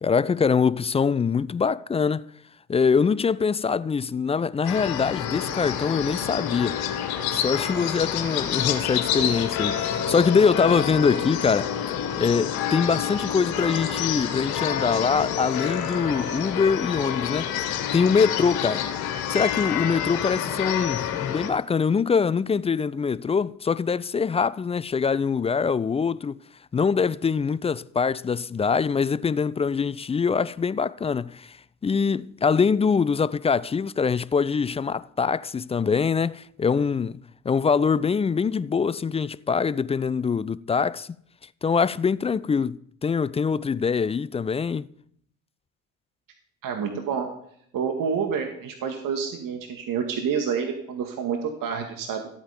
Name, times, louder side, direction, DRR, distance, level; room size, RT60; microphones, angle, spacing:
voice 1, 0.0-2.3 2.7-6.8 7.3-11.7 12.2-18.9 19.3-26.4 26.7-31.6 31.8-37.2 37.4-41.1 41.6-44.9, left 5 dB, 15° left, 0.4 m, -24 dB
sound 1, 4.6-21.5, left 9 dB, 65° left, 2.0 m, -28 dB
voice 2, 46.6-47.3 47.7-52.3, right 6 dB, 55° right, 2.1 m, -28 dB
14.5 x 8.8 x 5.2 m
hypercardioid pair, 65°, 40 cm